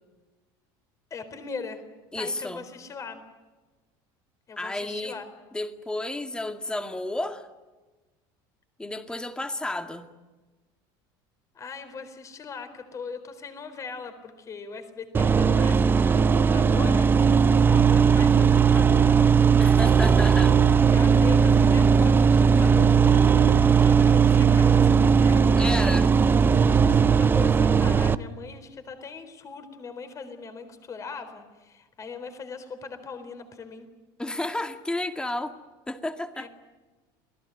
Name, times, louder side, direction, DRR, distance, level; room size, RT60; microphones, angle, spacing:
voice 1, 1.1-1.8 2.1-3.2 4.5-5.3 11.5-19.4 20.9-25.7 26.4-33.9 36.3-36.5, left 5 dB, 30° left, 10 dB, 4.1 m, -40 dB
voice 2, 2.1-2.6 4.6-5.2 5.5-7.5 8.8-10.1 19.6-20.6 25.6-26.1 34.2-35.6 35.9-36.5, left 2 dB, 10° left, 7 dB, 2.1 m, -31 dB
sound 1, 15.1-28.1, right 6 dB, 20° right, 0.8 m, -18 dB
29.0 x 19.0 x 9.4 m, 1.2 s
cardioid pair, 135°, 11 cm